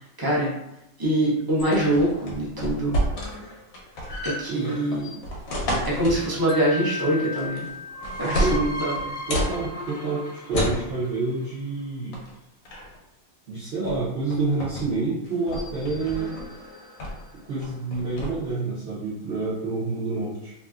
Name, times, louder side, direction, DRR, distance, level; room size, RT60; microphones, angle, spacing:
voice 1, 0.2-0.5 1.0-3.0 4.2-5.1 5.9-7.7 8.2-9.1, right 1 dB, 20° right, -6 dB, 0.6 m, -24 dB
sound 1, 1.6-3.4 3.7-4.3 4.9-6.3 7.4-7.7 8.0-9.6 10.5-10.8 12.1-12.3 12.6-13.0 13.8-14.0 14.3-14.9 15.2-16.5 17.0-17.3 17.6-18.3, equal, 90° left, 1.2 m, -29 dB
sound 2, 3.1-5.4 7.6-11.7 15.3-17.5, equal, 45° left, 0.4 m, -37 dB
Wind chime, 6.5-9.6, left 4 dB, 65° left, 0.9 m, -36 dB
voice 2, 9.3-12.2 13.5-16.4 17.5-20.5, right 3 dB, 50° right, -11 dB, 1.0 m, -28 dB
3.1 x 2.6 x 2.4 m, 0.86 s
omnidirectional pair, 1.5 m